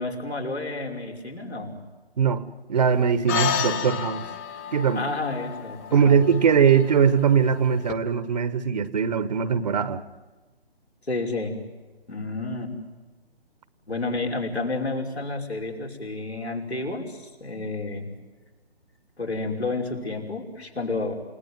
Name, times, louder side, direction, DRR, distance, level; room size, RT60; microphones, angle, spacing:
voice 1, 0.0-1.8 4.9-6.2 11.1-11.5 12.1-12.7 13.9-18.1 19.2-21.1, left 2 dB, 85° left, 5.8 m, -30 dB
voice 2, 2.2-4.3 4.7-5.1 5.9-10.0, right 7 dB, 40° right, 1.2 m, -21 dB
sound 1, 3.3-7.9, left 8 dB, 15° left, 0.9 m, -31 dB
29.5 x 18.5 x 9.6 m
figure-of-eight pair, 145°, 31 cm